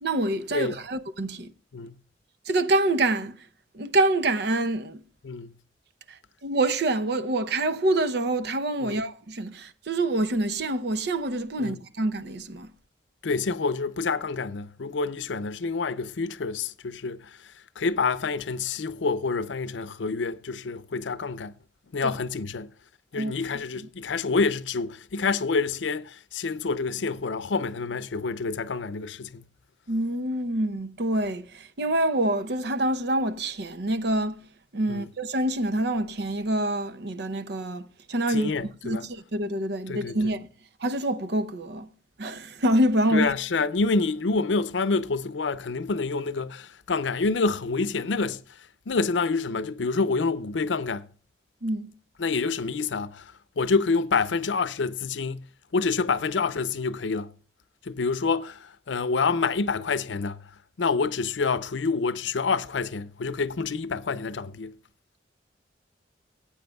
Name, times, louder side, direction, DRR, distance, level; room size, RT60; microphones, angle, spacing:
voice 1, 0.0-1.5 2.5-3.5 3.7-5.0 6.1-12.7 22.0-22.2 23.1-23.4 23.8-23.9 29.9-34.4 34.7-40.5 40.8-41.9 42.2-43.3 51.6-51.9, right 1 dB, 65° right, 0.8 m, -26 dB
voice 2, 13.2-21.5 21.9-22.7 23.1-29.4 34.9-35.1 38.3-39.1 39.9-40.3 43.1-48.4 48.9-51.1 52.2-55.5 55.7-57.3 57.8-60.4 60.8-64.7, left 4 dB, 90° left, 0.6 m, -27 dB
19.5 x 8.5 x 2.3 m
head